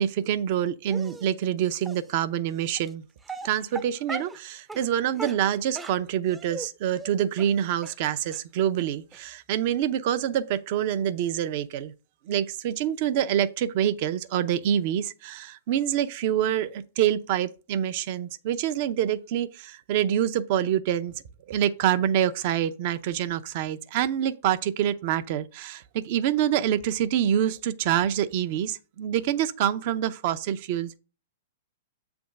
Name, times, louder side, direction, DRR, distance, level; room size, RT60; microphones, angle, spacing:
voice 1, 0.0-3.0 3.4-11.9 12.3-21.2 21.5-31.0, right 10 dB, 50° right, 0.6 m, -26 dB
Dog, 0.9-1.2 1.8-2.0 2.8-2.9 3.2-4.4 4.7-4.9 5.2-6.7 7.0-7.1 7.4-7.5 7.8-7.9 8.3-8.4 8.8-8.9 9.1-9.2, right 3 dB, 10° right, 0.5 m, -37 dB
7.7 x 3.5 x 5.2 m
hypercardioid pair, 125°, 0 cm